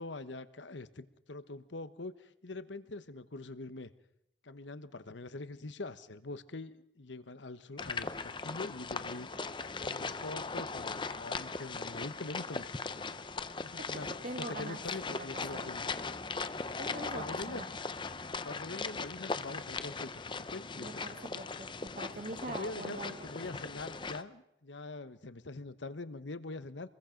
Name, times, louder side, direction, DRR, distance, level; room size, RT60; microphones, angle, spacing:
voice 1, 0.0-3.9 4.4-9.3 9.8-13.2 13.6-14.1 14.4-15.9 16.9-17.6 18.4-20.9 22.5-26.9, left 2 dB, 80° left, 13 dB, 1.2 m, -44 dB
sound 1, 7.8-24.2, left 4 dB, 25° left, 0.7 m, -39 dB
voice 2, 13.8-14.8 15.1-15.7 16.8-17.6 20.8-23.1, right 1 dB, 45° right, 6 dB, 2.6 m, -43 dB
27.0 x 21.5 x 5.2 m, 0.80 s
head